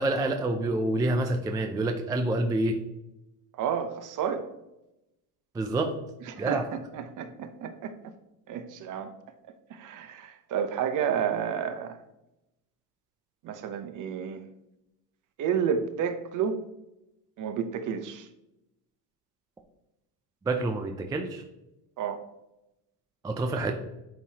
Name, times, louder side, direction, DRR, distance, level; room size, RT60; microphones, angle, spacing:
voice 1, 0.0-2.8 5.5-6.0 6.4-6.7 20.5-21.4 23.2-23.7, right 2 dB, 10° right, 5 dB, 0.3 m, -27 dB
voice 2, 3.6-4.5 6.2-7.9 8.5-9.1 9.7-12.0 13.4-14.4 15.4-16.6 17.4-18.3 22.0-22.2, right 7 dB, 45° right, 10 dB, 0.8 m, -31 dB
9.2 x 4.8 x 2.8 m, 0.91 s
cardioid pair, 140°, 43 cm